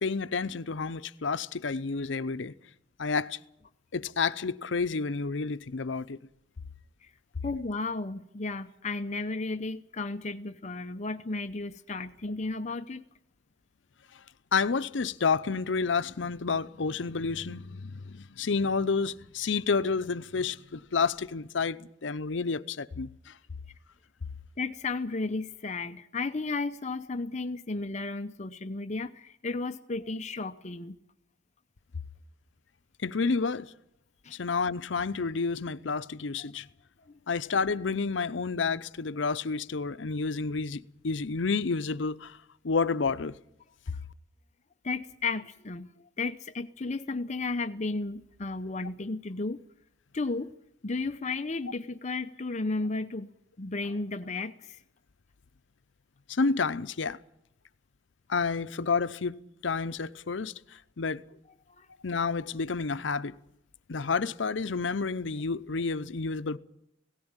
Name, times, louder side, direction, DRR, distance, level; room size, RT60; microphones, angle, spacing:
voice 1, 0.0-2.5 3.0-3.4 3.9-6.2 14.5-23.3 33.0-33.7 34.3-36.7 37.3-42.4 42.6-43.3 56.3-57.2 58.3-59.4 59.6-60.5 61.0-61.2 62.0-63.4 63.9-66.6, left 4 dB, 80° left, 0.7 m, -30 dB
voice 2, 7.4-13.0 24.6-31.0 34.2-34.4 37.1-37.2 44.8-49.6 50.1-50.5 50.8-53.3 53.6-54.8 61.8-61.9, left 3 dB, 40° left, 0.7 m, -33 dB
17.5 x 17.0 x 8.9 m
head